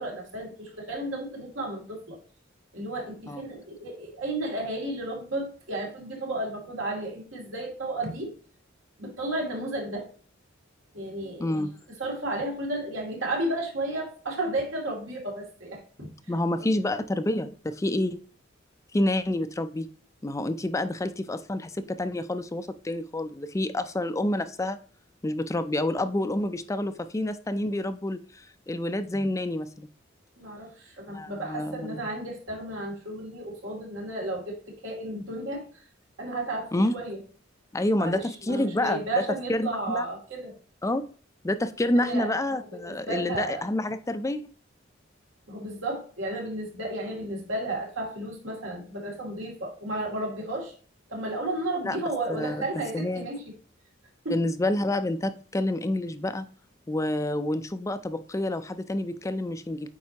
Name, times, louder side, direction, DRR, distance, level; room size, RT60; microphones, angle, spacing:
voice 1, 0.0-2.2 2.7-8.3 9.0-10.1 10.9-11.5 12.0-16.1 30.4-35.8 36.2-37.2 38.0-40.5 42.0-42.4 42.8-43.6 45.5-50.7 51.1-53.5 54.2-54.4, right 2 dB, 80° right, 0 dB, 2.6 m, -33 dB
voice 2, 11.4-11.7 16.0-18.2 18.9-19.9 20.2-24.8 25.2-29.9 31.1-32.0 36.7-36.9 37.7-39.0 39.5-40.0 40.8-41.1 41.4-44.4 51.8-52.0 52.3-53.3 54.3-56.5 56.9-59.9, left 1 dB, 15° left, 11 dB, 0.4 m, -28 dB
8.6 x 4.5 x 2.9 m, 0.41 s
head